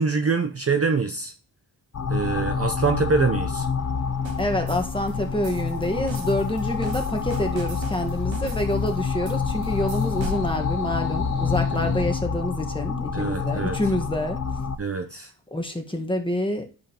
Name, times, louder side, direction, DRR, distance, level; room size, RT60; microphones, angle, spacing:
voice 1, 0.0-1.3 2.1-3.7 11.8-12.0 13.1-13.8 14.8-15.3, right 4 dB, 30° right, 6 dB, 0.8 m, -25 dB
sound 1, 1.9-14.8, left 5 dB, 35° left, 0.7 m, -27 dB
sound 2, 3.8-12.1, left 5 dB, 75° left, 2.0 m, -37 dB
sound 3, 4.2-10.6, right 7 dB, 70° right, 1.0 m, -44 dB
voice 2, 4.4-14.4 15.5-16.7, left 1 dB, 10° left, 4 dB, 1.4 m, -27 dB
10.5 x 5.0 x 2.9 m, 0.35 s
cardioid pair, 60°, 47 cm